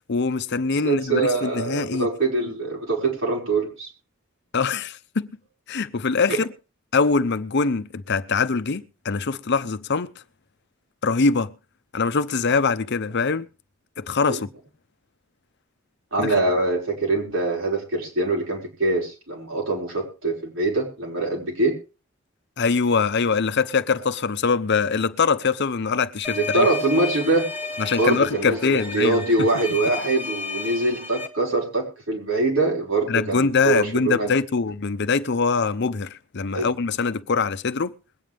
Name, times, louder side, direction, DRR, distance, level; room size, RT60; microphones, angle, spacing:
voice 1, 0.1-2.1 4.5-5.3 5.7-6.5 6.9-10.1 11.0-11.5 11.9-13.5 14.0-14.5 16.2-16.3 22.6-26.7 27.8-29.5 33.1-37.9, left 4 dB, 55° left, 0.7 m, -23 dB
voice 2, 0.8-3.9 6.3-6.4 14.3-14.4 16.1-21.8 26.3-27.5 28.0-34.3 36.5-36.7, right 2 dB, 80° right, 5.4 m, -24 dB
sound 1, 26.2-31.3, left 4 dB, 10° right, 1.5 m, -32 dB
22.0 x 9.2 x 3.5 m
head